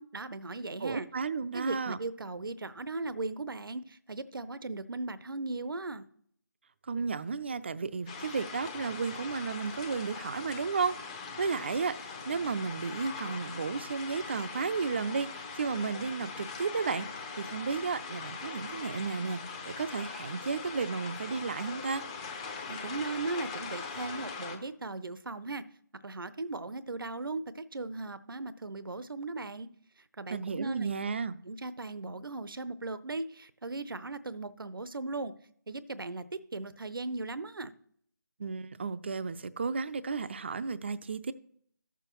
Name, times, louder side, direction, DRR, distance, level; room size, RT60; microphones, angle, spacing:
voice 1, 0.0-1.1 1.5-6.1 22.7-25.6 26.0-29.7 30.0-30.9 31.4-35.3 35.7-37.7, right 3 dB, 85° right, 0.6 m, -38 dB
voice 2, 0.8-2.0 6.9-10.9 11.4-17.1 17.4-19.4 19.7-22.0 30.3-31.3 38.4-41.3, right 5 dB, 30° right, 0.4 m, -33 dB
sound 1, 8.1-24.6, left 5 dB, 15° left, 0.7 m, -41 dB
14.5 x 6.9 x 3.0 m
figure-of-eight pair, 165°, 11 cm